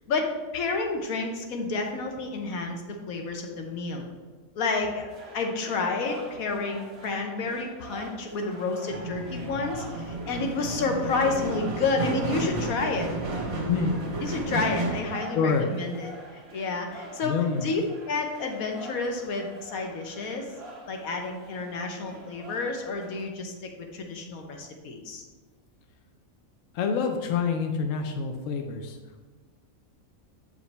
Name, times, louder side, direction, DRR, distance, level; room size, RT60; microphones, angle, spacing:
voice 1, 0.1-4.0 4.5-13.1 14.2-17.8 18.1-20.5 20.9-25.2, left 4 dB, 90° left, 3 dB, 1.3 m, -30 dB
sound 1, 5.1-23.3, right 1 dB, 50° right, 1.3 m, -46 dB
sound 2, 8.9-15.0, right 2 dB, 75° right, 1.7 m, -32 dB
voice 2, 15.3-15.7 17.2-17.7 26.7-29.0, left 5 dB, 70° left, 4 dB, 1.0 m, -26 dB
8.1 x 5.0 x 3.3 m, 1.3 s
omnidirectional pair, 1.4 m